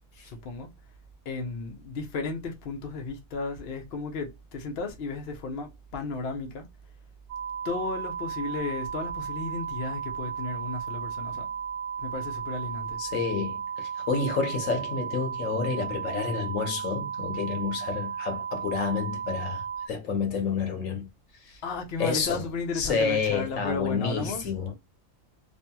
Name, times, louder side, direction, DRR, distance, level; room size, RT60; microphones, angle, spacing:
voice 1, 0.2-0.7 1.2-6.7 7.6-11.5 12.0-13.0 21.6-24.5, left 3 dB, 55° left, 0.8 m, -34 dB
sound 1, 7.3-19.9, right 7 dB, 70° right, 1.0 m, -34 dB
voice 2, 13.0-21.1 21.4-21.6 22.0-22.4 22.7-24.7, left 5 dB, 75° left, 1.2 m, -29 dB
2.8 x 2.6 x 2.2 m
omnidirectional pair, 1.4 m